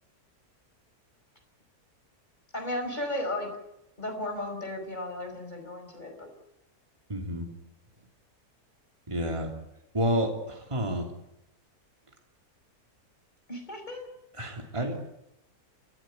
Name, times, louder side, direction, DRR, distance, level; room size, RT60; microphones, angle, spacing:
voice 1, 2.5-3.5 4.0-6.3 13.5-14.1 14.8-14.9, left 1 dB, 30° left, 5 dB, 5.4 m, -34 dB
voice 2, 7.1-7.5 9.1-9.5 9.9-11.1 14.4-15.0, right 1 dB, 20° right, 2 dB, 3.0 m, -29 dB
29.0 x 14.0 x 9.1 m, 0.84 s
omnidirectional pair, 1.6 m